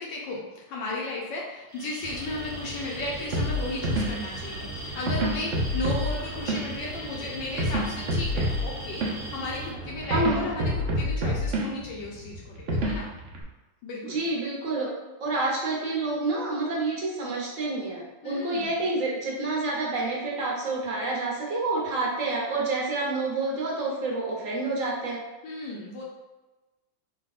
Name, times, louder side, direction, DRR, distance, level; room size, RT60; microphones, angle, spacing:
voice 1, 0.0-13.1 13.8-14.2 18.2-18.8 25.4-26.0, left 2 dB, 70° left, -3 dB, 1.2 m, -35 dB
Alarm, 1.7-9.7, right 1 dB, 25° right, 0.5 m, -41 dB
sound 1, 2.0-11.0, right 2 dB, 90° left, 1.9 m, -41 dB
sound 2, 3.3-13.4, equal, 85° right, 0.6 m, -29 dB
voice 2, 10.1-10.4 14.0-14.9 15.2-25.2, right 2 dB, 50° right, -4 dB, 1.1 m, -28 dB
4.1 x 2.3 x 4.0 m, 1.1 s
omnidirectional pair, 2.3 m